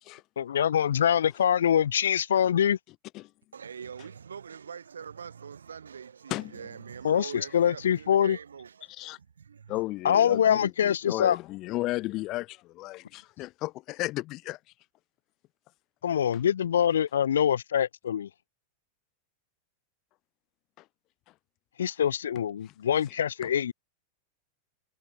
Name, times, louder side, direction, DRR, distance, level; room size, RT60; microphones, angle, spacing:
voice 1, 0.4-2.8 7.0-8.4 10.0-11.4 16.0-18.3 21.8-23.7, left 9 dB, 65° left, 0.7 m, -24 dB
voice 2, 3.5-9.8, right 7 dB, 70° right, 3.2 m, -43 dB
voice 3, 9.7-14.6 20.8-20.9 23.1-23.5, left 18 dB, 40° left, 2.1 m, -34 dB
figure-of-eight pair, 90°, 0 cm